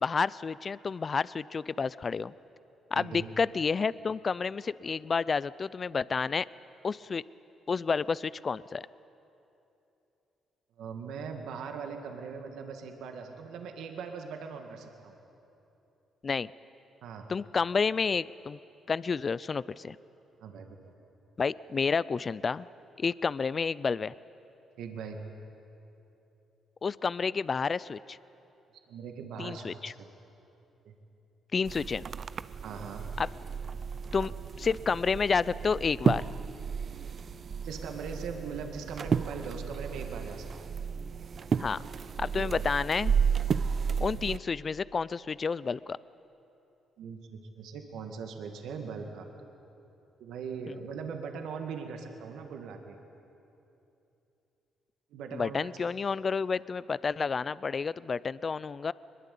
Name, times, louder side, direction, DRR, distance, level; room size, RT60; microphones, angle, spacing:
voice 1, 0.0-2.3 2.9-6.5 6.8-7.2 7.7-8.9 16.2-16.5 17.3-18.6 18.9-20.0 21.4-22.7 23.0-24.1 26.8-28.2 29.4-29.9 31.5-32.0 33.2-33.3 34.1-34.3 34.6-36.3 41.6-41.8 42.2-43.1 44.0-46.0 50.7-50.8 55.3-58.9, left 5 dB, 40° left, 20 dB, 0.4 m, -30 dB
voice 2, 2.9-3.3 10.8-15.2 17.0-17.3 20.4-20.9 24.8-25.2 28.9-30.1 30.8-30.9 32.6-33.0 37.6-40.5 42.3-42.5 47.0-49.3 50.2-53.0 55.1-55.7, right 5 dB, 80° right, 4 dB, 2.0 m, -40 dB
sound 1, 31.6-44.4, right 6 dB, 45° right, 0.5 m, -32 dB
22.0 x 21.5 x 8.5 m, 2.9 s
cardioid pair, 90°, 0 cm